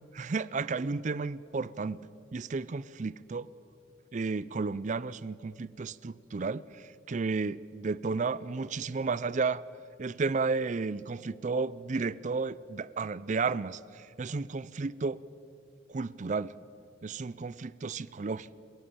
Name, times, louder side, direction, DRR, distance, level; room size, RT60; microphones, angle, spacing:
voice 1, 0.2-2.0 2.3-3.5 4.1-9.6 10.0-15.2 15.9-16.5 17.0-18.5, right 4 dB, 40° right, 19 dB, 0.4 m, -33 dB
22.0 x 17.0 x 8.9 m, 2.7 s
head